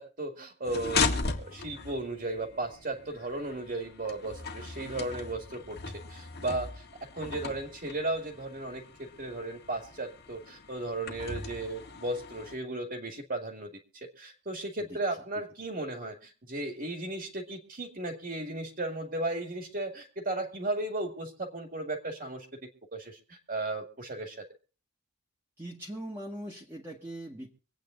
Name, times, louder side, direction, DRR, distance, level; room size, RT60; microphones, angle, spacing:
voice 1, 0.0-5.8 6.1-6.9 7.2-24.4, right 2 dB, 45° right, 3 dB, 2.2 m, -35 dB
sound 1, 0.6-12.5, left 4 dB, 50° left, 1.8 m, -37 dB
voice 2, 25.6-27.6, right 1 dB, 10° right, -3 dB, 1.8 m, -41 dB
25.0 x 9.2 x 3.8 m, 0.37 s
head